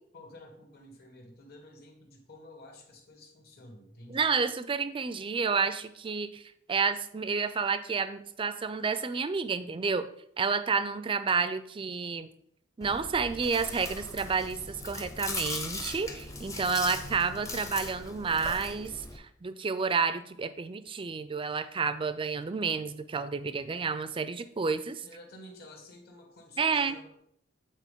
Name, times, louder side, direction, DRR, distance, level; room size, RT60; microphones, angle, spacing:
voice 1, 0.1-4.2 25.0-27.1, left 1 dB, 55° left, 2 dB, 1.5 m, -51 dB
voice 2, 4.1-6.4 6.7-10.1 10.4-12.3 12.8-25.0 26.6-27.0, right 5 dB, 25° right, 12 dB, 0.4 m, -30 dB
Chewing mastication, 12.8-19.2, left 2 dB, 15° left, 0.7 m, -39 dB
8.2 x 4.1 x 3.6 m, 0.69 s
head